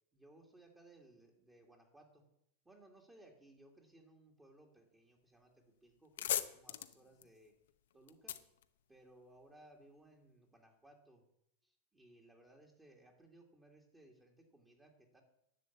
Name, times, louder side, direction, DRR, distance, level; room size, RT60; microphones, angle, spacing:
voice 1, 0.1-2.2 2.6-7.5 7.9-8.4 8.9-11.2 11.6-15.2, right 1 dB, 10° right, 1 dB, 2.3 m, -63 dB
sound 1, 5.4-5.6 5.9-9.5, left 11 dB, 75° left, 0.8 m, -41 dB
10.5 x 6.6 x 8.3 m, 0.77 s
hypercardioid pair, 110°, 0 cm